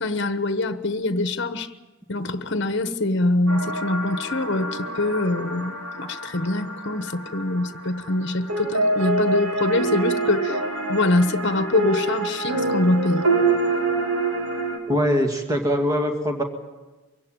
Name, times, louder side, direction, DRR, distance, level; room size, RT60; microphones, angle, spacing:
voice 1, 0.0-1.7 2.1-10.6 10.9-13.3, left 2 dB, 55° left, 1.1 m, -24 dB
sound 1, 3.5-14.8, right 2 dB, 85° right, 3.2 m, -26 dB
voice 2, 14.9-16.4, equal, 15° right, 2.1 m, -22 dB
24.0 x 16.5 x 9.0 m
head